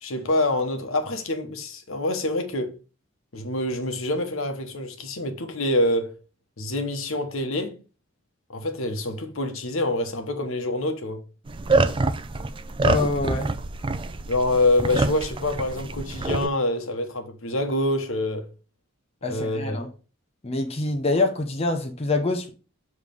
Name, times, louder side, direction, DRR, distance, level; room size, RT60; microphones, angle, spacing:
voice 1, 0.0-2.8 3.3-6.1 6.6-7.8 8.5-11.2 14.3-18.5 19.2-19.8, left 1 dB, 75° left, 1.1 m, -26 dB
sound 1, 11.5-16.5, right 3 dB, 25° right, 0.4 m, -26 dB
voice 2, 12.8-13.5 19.2-19.9 20.4-22.5, left 2 dB, 30° left, 0.7 m, -25 dB
7.2 x 3.2 x 5.2 m
head